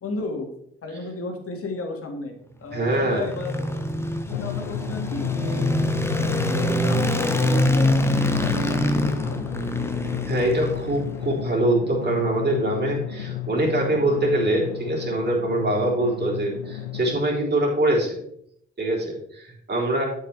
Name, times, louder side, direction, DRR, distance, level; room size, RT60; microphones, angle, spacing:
voice 1, 0.0-0.5 0.8-3.7 4.3-5.7 6.1-10.0, left 3 dB, 40° left, 3 dB, 2.1 m, -34 dB
voice 2, 2.7-3.2 10.3-18.2 18.8-20.1, right 1 dB, 30° right, -3 dB, 3.5 m, -23 dB
sound 1, 2.8-11.2, left 1 dB, 5° left, 1.0 m, -24 dB
Drum, 4.3-17.3, left 10 dB, 80° left, 0.6 m, -32 dB
11.5 x 5.6 x 3.4 m, 0.73 s
figure-of-eight pair, 45°, 35 cm